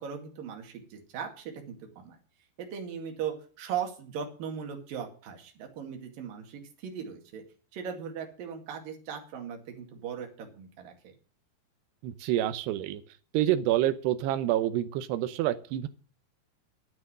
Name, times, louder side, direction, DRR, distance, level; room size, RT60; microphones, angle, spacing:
voice 1, 0.0-2.2 2.6-7.4 7.7-10.9, right 7 dB, 60° right, 3 dB, 3.8 m, -38 dB
voice 2, 12.0-13.0 13.3-15.9, right 13 dB, 85° right, 11 dB, 3.0 m, -27 dB
10.5 x 9.6 x 7.6 m, 0.39 s
omnidirectional pair, 4.7 m